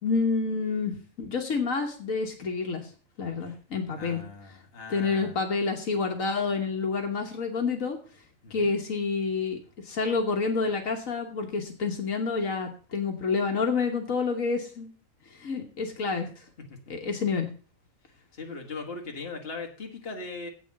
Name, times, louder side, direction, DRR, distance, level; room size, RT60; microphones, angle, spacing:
voice 1, 0.0-2.9 3.2-4.2 4.9-8.0 8.5-9.6 9.8-14.9 15.3-16.4 16.9-17.5, left 4 dB, 75° left, 3 dB, 1.6 m, -28 dB
voice 2, 3.9-5.4 8.4-8.7 16.7-16.8 18.3-20.5, left 3 dB, 45° left, 2 dB, 1.9 m, -39 dB
8.2 x 6.9 x 7.3 m, 0.41 s
omnidirectional pair, 1.4 m